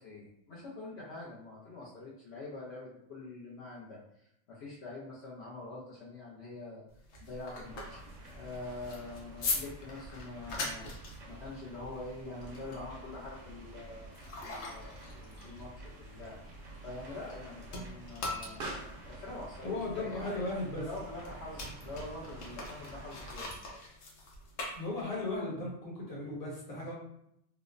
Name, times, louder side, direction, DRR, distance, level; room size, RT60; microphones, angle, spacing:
voice 1, 0.0-6.8 7.2-8.0 8.3-10.9 11.3-16.4 16.8-20.4 20.8-23.6, left 2 dB, 65° left, -6 dB, 0.9 m, -45 dB
sound 1, 6.9-17.4 17.7-25.4, left 2 dB, 90° left, 1.0 m, -42 dB
sound 2, 7.6-23.4, right 1 dB, 75° right, 1.0 m, -50 dB
Explosion, 18.2-23.4, right 2 dB, 60° right, 0.7 m, -51 dB
voice 2, 19.6-20.8 24.7-26.9, left 2 dB, 35° left, -5 dB, 1.0 m, -36 dB
3.0 x 2.1 x 2.4 m, 0.74 s
omnidirectional pair, 1.3 m